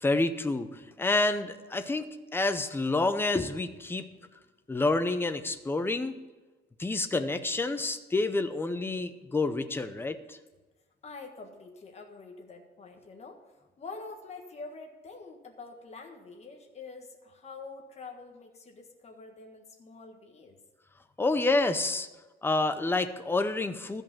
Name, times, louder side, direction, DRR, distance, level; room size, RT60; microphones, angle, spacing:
voice 1, 0.0-2.1 2.3-4.1 4.7-6.1 6.8-10.4 21.2-22.1 22.4-24.0, left 2 dB, 10° left, 9 dB, 0.6 m, -28 dB
voice 2, 11.0-20.6, left 3 dB, 35° left, 2 dB, 1.6 m, -46 dB
13.5 x 5.4 x 7.1 m, 1.2 s
cardioid pair, 150°, 20 cm